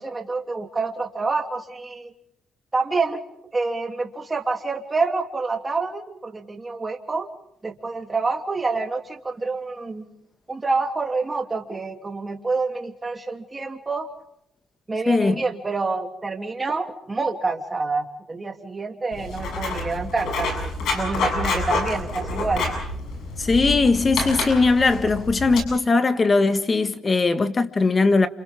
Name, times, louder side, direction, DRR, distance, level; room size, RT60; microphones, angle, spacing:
voice 1, 0.0-2.1 2.7-3.2 3.5-7.3 7.6-10.0 10.5-14.1 14.9-22.6, right 3 dB, 25° right, 3.0 m, -27 dB
voice 2, 15.1-15.4 23.4-28.3, left 3 dB, 30° left, 1.6 m, -19 dB
Writing, 19.1-25.6, left 3 dB, 75° left, 7.3 m, -28 dB
29.5 x 27.5 x 3.6 m
cardioid pair, 90°, 0 cm